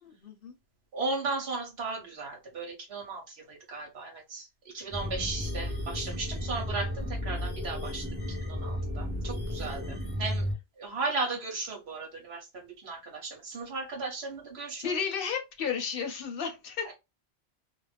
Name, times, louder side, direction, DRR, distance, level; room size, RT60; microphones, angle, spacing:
voice 1, 0.0-0.5 14.8-16.9, left 6 dB, 65° left, 0.9 m, -33 dB
voice 2, 0.9-8.1 8.4-10.5 10.8-14.9 16.9-17.0, right 3 dB, 75° right, 1.0 m, -36 dB
sound 1, 4.9-10.5, left 1 dB, 10° right, 0.6 m, -33 dB
2.4 x 2.1 x 3.2 m
omnidirectional pair, 1.1 m